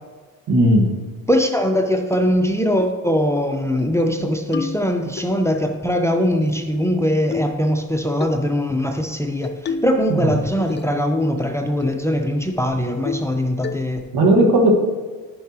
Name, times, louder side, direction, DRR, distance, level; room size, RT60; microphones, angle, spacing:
voice 1, 0.5-1.0 10.1-10.3 14.1-14.8, right 1 dB, 65° right, 2 dB, 1.7 m, -15 dB
voice 2, 1.3-14.0, equal, 5° left, 4 dB, 0.8 m, -21 dB
sound 1, 2.1-2.2 2.8-3.0 3.4-3.5 3.8-4.2 4.5-5.3 6.3-6.9 7.3-7.6 8.2-8.4 9.4-10.0 10.3-11.0 11.4-11.5 11.8-12.0 12.4-12.5 13.0-13.4 13.6-14.1, left 5 dB, 25° left, 0.4 m, -31 dB
10.5 x 5.9 x 3.0 m, 1.4 s
hypercardioid pair, 55°, 43 cm